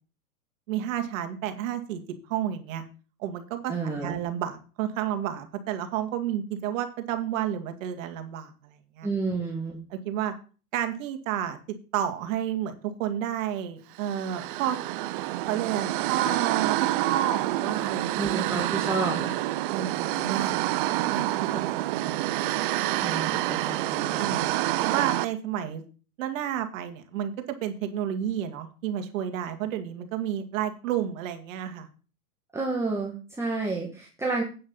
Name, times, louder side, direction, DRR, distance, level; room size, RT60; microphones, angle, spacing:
voice 1, 0.7-2.0 2.3-2.8 3.2-9.1 9.9-10.3 10.7-11.6 11.9-14.8 15.5-18.9 19.7-20.6 21.1-21.9 24.2-25.8 26.2-31.9, right 10 dB, 55° right, 6 dB, 2.2 m, -31 dB
voice 2, 3.7-4.1 9.0-9.8 18.2-19.3 22.0-22.1 23.0-24.4 32.5-34.4, right 3 dB, 5° right, -3 dB, 1.8 m, -30 dB
sound 1, 14.0-25.3, right 16 dB, 35° right, 0.5 m, -28 dB
8.9 x 6.5 x 7.1 m, 0.37 s
hypercardioid pair, 130°, 47 cm